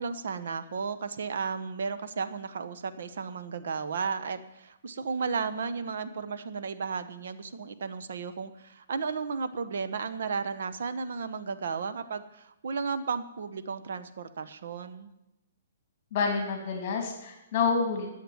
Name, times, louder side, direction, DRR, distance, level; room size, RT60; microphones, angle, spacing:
voice 1, 0.0-15.1, right 5 dB, 70° right, 11 dB, 1.0 m, -34 dB
voice 2, 16.1-18.1, left 5 dB, 40° left, 2 dB, 2.7 m, -28 dB
10.5 x 7.8 x 9.3 m, 0.92 s
hypercardioid pair, 165°, 0 cm